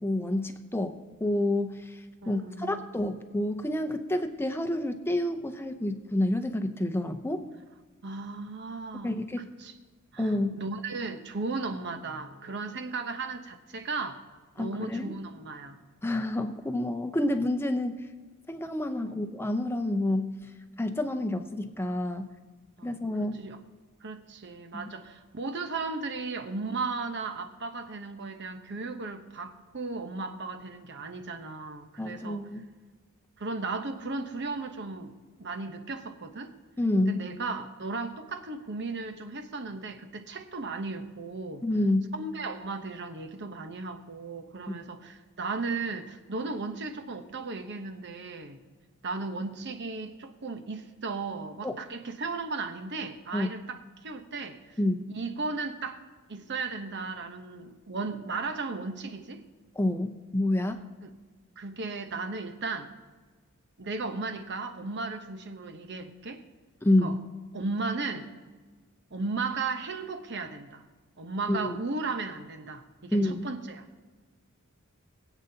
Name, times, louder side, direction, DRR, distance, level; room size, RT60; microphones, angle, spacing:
voice 1, 0.0-7.4 9.0-9.5 10.2-10.6 14.6-15.1 16.0-18.1 18.5-20.3 20.8-22.3 22.8-23.4 24.7-24.9 32.0-32.6 36.8-37.2 41.6-42.1 51.6-51.7 53.3-53.5 54.8-55.0 59.8-60.8 66.8-67.2 71.5-71.8 73.1-73.5, left 1 dB, 10° left, 7 dB, 0.7 m, -28 dB
voice 2, 2.2-2.8 8.0-9.7 10.1-14.2 14.6-15.8 19.0-19.2 22.8-23.6 24.0-32.4 33.4-36.5 37.1-41.6 42.1-48.6 49.0-54.8 55.2-56.0 56.3-59.4 61.0-61.1 61.6-62.9 63.8-66.4 67.0-67.2 67.5-68.3 69.1-70.8 71.2-73.8, right 3 dB, 55° right, 7 dB, 1.0 m, -36 dB
21.5 x 8.2 x 2.9 m, 1.4 s
head